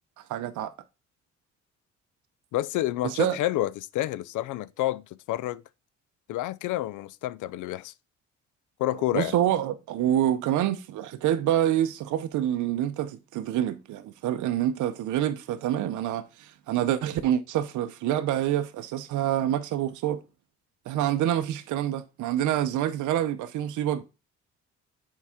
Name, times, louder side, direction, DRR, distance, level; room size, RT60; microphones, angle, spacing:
voice 1, 0.3-0.7 3.0-3.4 9.1-20.2 20.9-24.0, right 11 dB, 75° right, 0.6 m, -27 dB
voice 2, 2.5-5.6 6.3-7.9 8.8-9.3, left 15 dB, 80° left, 0.5 m, -29 dB
7.2 x 4.7 x 3.5 m
cardioid pair, 90°, 30 cm